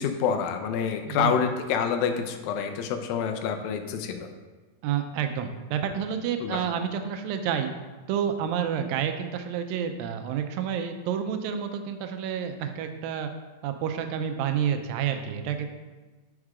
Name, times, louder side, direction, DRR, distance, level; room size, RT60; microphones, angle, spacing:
voice 1, 0.0-4.3 6.4-6.6, left 7 dB, 90° left, 6 dB, 2.4 m, -27 dB
voice 2, 1.1-1.4 4.8-7.7 8.1-13.3 13.6-15.7, right 8 dB, 85° right, 7 dB, 2.4 m, -29 dB
6.4 x 4.9 x 4.8 m, 1.2 s
omnidirectional pair, 4.0 m